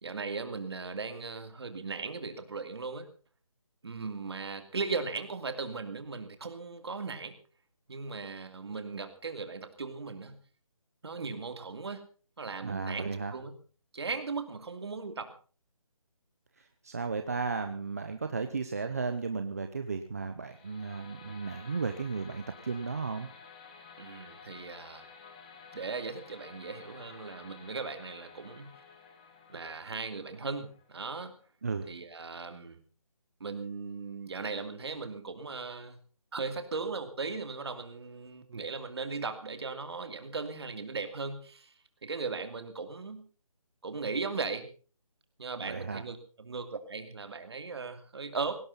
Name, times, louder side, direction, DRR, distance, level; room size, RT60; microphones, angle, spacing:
voice 1, 0.0-3.1 3.8-7.3 7.9-10.4 11.0-12.0 12.4-13.6 13.9-15.3 24.0-25.1 25.7-28.7 29.5-31.3 31.9-32.8 33.4-36.0 36.3-41.7 42.0-43.2 43.8-44.6 45.4-48.6, right 4 dB, 45° right, 8 dB, 2.7 m, -38 dB
voice 2, 12.6-13.3 16.8-23.3 31.6-31.9 45.6-46.0, right 4 dB, 25° right, 7 dB, 0.8 m, -34 dB
sound 1, 20.4-31.5, left 5 dB, 15° left, 1.4 m, -53 dB
18.0 x 17.5 x 4.0 m, 0.39 s
figure-of-eight pair, 175°, 18 cm